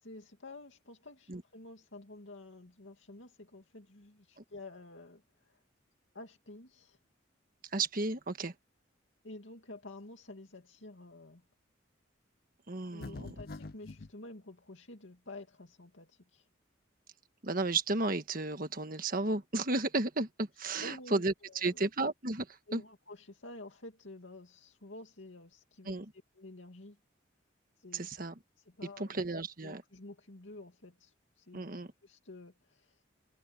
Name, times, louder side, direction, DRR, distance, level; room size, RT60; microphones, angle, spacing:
voice 1, 0.0-5.6 6.1-7.0 9.2-11.4 12.9-16.5 20.8-21.9 22.7-25.9 26.4-27.0 27.8-28.1 28.7-29.3 29.6-31.6 32.0-33.0, left 2 dB, 80° left, 2.4 m, -50 dB
voice 2, 7.7-8.5 12.7-13.3 17.4-22.8 25.8-26.1 27.9-28.3 29.0-29.8 31.5-31.9, right 3 dB, 45° right, 1.5 m, -33 dB
sound 1, 13.0-14.1, left 3 dB, 50° left, 0.6 m, -44 dB
head